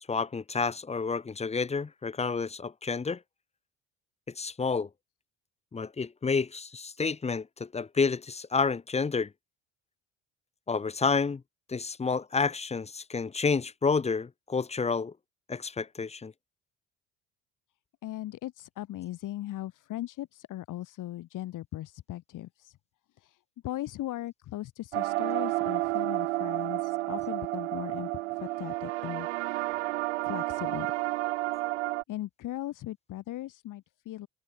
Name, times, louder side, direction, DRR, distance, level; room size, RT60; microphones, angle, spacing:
voice 1, 0.1-3.2 4.4-4.9 5.7-9.3 10.7-11.4 11.7-15.1 15.5-16.3, left 4 dB, 20° left, 0.8 m, -29 dB
voice 2, 18.0-22.8 23.2-28.1 28.4-29.6 30.2-30.9 32.1-34.3, left 14 dB, 65° left, 5.7 m, -38 dB
sound 1, 24.9-32.0, right 19 dB, 85° right, 0.5 m, -31 dB
hypercardioid pair, 55°, 34 cm